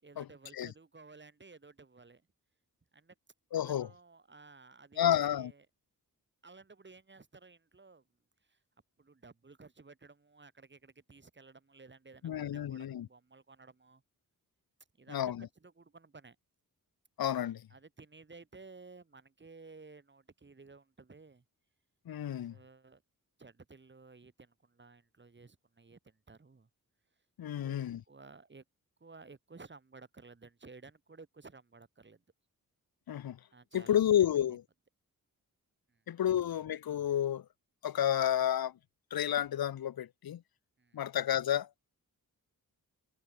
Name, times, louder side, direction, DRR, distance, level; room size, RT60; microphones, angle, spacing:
voice 1, 0.0-2.2 2.9-3.1 3.5-5.6 6.4-8.0 8.4-8.6 9.0-14.0 15.0-16.4 17.7-21.4 22.4-23.0 23.4-26.7 27.5-28.6 29.0-32.2 33.5-34.6 35.9-36.3 40.8-41.0, right 4 dB, 30° right, 6.5 m, -55 dB
voice 2, 3.5-3.9 5.0-5.5 12.2-13.1 15.1-15.5 17.2-17.6 22.1-22.5 27.4-28.0 33.1-33.4 33.7-34.6 36.1-37.4 37.8-38.7 39.1-40.4 40.9-41.7, left 10 dB, 90° left, 1.0 m, -30 dB
wide cardioid pair, 145°, 35 cm